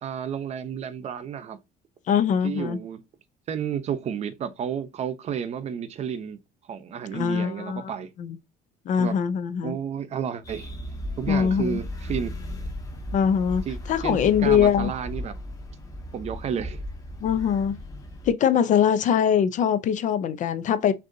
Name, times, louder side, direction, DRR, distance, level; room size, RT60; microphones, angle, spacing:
voice 1, 0.0-1.6 2.4-3.0 3.5-6.4 6.7-8.1 9.0-9.1 9.6-10.7 11.2-12.3 13.7-15.3 16.1-16.8, right 8 dB, 40° right, 0.7 m, -31 dB
voice 2, 2.1-2.8 7.1-7.8 8.2-8.4 8.9-9.8 11.3-11.8 13.1-13.6 13.9-14.9 17.2-17.7 18.2-20.9, left 8 dB, 45° left, 0.5 m, -22 dB
sound 1, 10.4-18.3, equal, 20° left, 1.4 m, -36 dB
6.4 x 2.7 x 2.7 m
cardioid pair, 145°, 18 cm